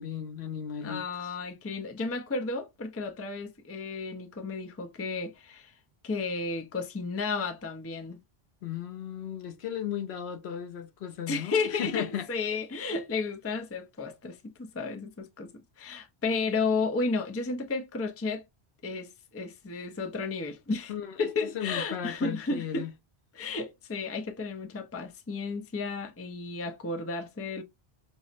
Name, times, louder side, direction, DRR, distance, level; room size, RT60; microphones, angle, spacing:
voice 1, 0.0-1.3 8.6-12.3 20.9-21.3 21.5-22.9, left 9 dB, 80° left, 0.9 m, -36 dB
voice 2, 0.8-5.7 6.0-8.2 11.3-15.5 15.8-18.4 18.8-20.9 21.2-22.9 23.3-27.6, left 4 dB, 20° left, 0.4 m, -33 dB
5.4 x 2.0 x 2.4 m
omnidirectional pair, 1.1 m